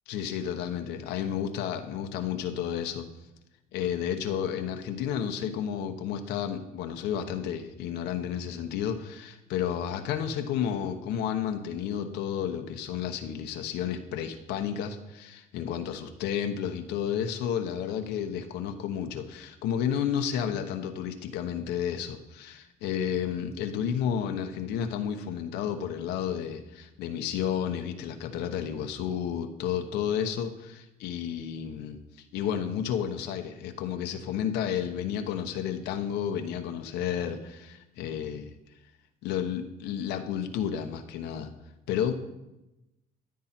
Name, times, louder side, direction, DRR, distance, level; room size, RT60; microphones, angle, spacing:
voice 1, 0.1-3.1 3.7-32.0 32.3-38.5 39.2-41.5 41.9-42.1, left 8 dB, 90° left, 6 dB, 1.0 m, -31 dB
14.0 x 8.6 x 4.4 m, 0.95 s
cardioid pair, 110°, 17 cm